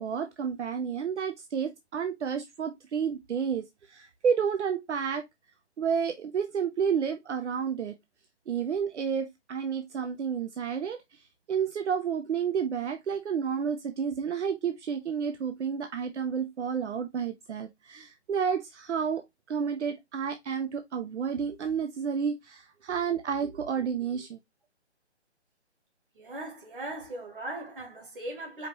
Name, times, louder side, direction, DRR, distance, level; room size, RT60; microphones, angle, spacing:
voice 1, 0.0-5.2 5.8-7.9 8.5-24.4, right 7 dB, 75° right, 0.6 m, -31 dB
voice 2, 26.2-28.7, right 1 dB, 50° right, 2.0 m, -39 dB
5.0 x 2.9 x 2.8 m
hypercardioid pair, 165°, 35 cm